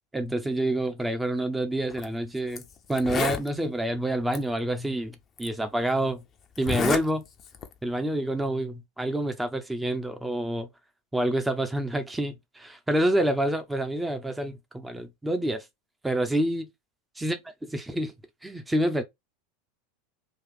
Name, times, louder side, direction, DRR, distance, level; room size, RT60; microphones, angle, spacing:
voice 1, 0.1-2.6 2.9-6.2 6.6-7.2 7.8-10.7 11.1-15.6 16.0-16.7 17.2-17.4 17.7-18.1 18.4-19.0, right 1 dB, 10° right, 0.8 m, -27 dB
Zipper (clothing), 1.9-2.1 2.6-2.7 2.9-3.5 4.3-4.4 5.4-5.5 6.5-7.0 7.4-7.7, left 6 dB, 35° left, 0.7 m, -29 dB
3.2 x 2.5 x 3.8 m
hypercardioid pair, 90°, 0 cm